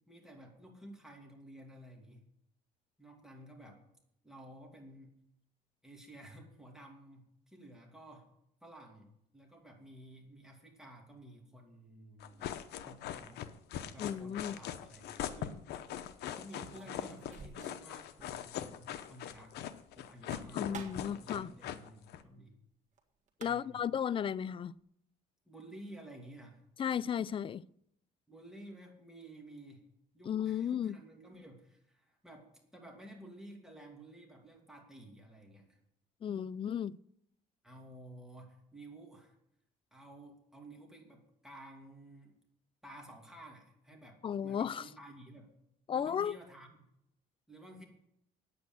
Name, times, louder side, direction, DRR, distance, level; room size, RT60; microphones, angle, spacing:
voice 1, 0.1-2.2 3.0-3.8 4.2-5.2 5.8-8.3 8.6-12.5 12.8-13.5 13.8-15.6 16.3-19.6 19.9-22.6 23.4-24.0 25.4-26.6 28.3-29.9 30.1-35.8 37.6-39.3 39.9-42.4 42.8-45.6 45.9-46.8 47.5-47.8, right 1 dB, 5° right, 2.7 m, -53 dB
sound 1, 12.2-22.2, left 11 dB, 75° left, 0.9 m, -41 dB
voice 2, 14.0-14.6 20.5-21.5 23.4-24.7 26.8-27.6 30.3-31.0 36.2-37.0 44.2-44.8 45.9-46.4, left 8 dB, 30° left, 0.4 m, -34 dB
sound 2, 14.9-15.0 16.5-17.9 18.2-18.3 18.6-18.7 20.1-21.2 23.0-23.1 23.3-23.9, right 5 dB, 45° right, 1.7 m, -50 dB
9.4 x 8.5 x 7.8 m
cardioid pair, 110°, 17 cm